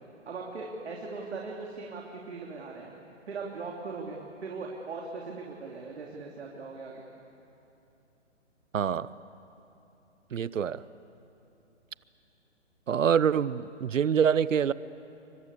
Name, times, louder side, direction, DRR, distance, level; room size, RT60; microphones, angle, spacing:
voice 1, 0.2-3.0 3.3-7.0, right 4 dB, 60° right, -1 dB, 3.3 m, -39 dB
voice 2, 8.7-9.1 10.3-10.8 12.9-14.7, right 7 dB, 85° right, 18 dB, 0.9 m, -25 dB
28.5 x 24.0 x 8.4 m, 2.9 s
hypercardioid pair, 160°, 37 cm